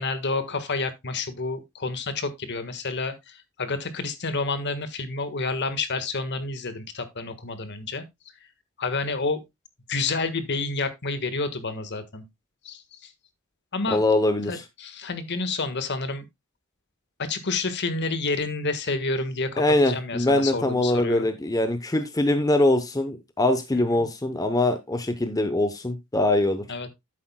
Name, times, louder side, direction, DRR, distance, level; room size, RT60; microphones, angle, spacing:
voice 1, 0.0-8.0 8.8-9.4 9.9-12.2 12.6-12.8 13.7-14.0 14.5-16.2 17.3-21.3 23.7-23.8 26.7-26.9, left 3 dB, 55° left, 1.5 m, -29 dB
voice 2, 13.9-14.6 19.6-26.6, left 1 dB, 15° left, 0.8 m, -23 dB
11.5 x 8.8 x 2.2 m
head